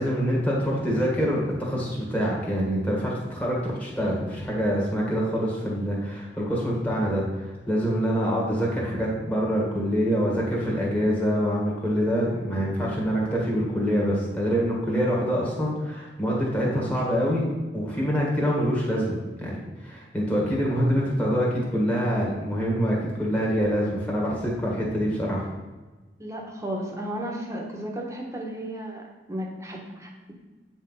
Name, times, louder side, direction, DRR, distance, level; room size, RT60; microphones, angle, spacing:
voice 1, 0.0-17.4 17.7-25.5, equal, 10° left, -5 dB, 1.8 m, -25 dB
voice 2, 26.2-30.3, right 1 dB, 15° right, 0 dB, 1.3 m, -34 dB
8.6 x 4.5 x 5.7 m, 1.2 s
head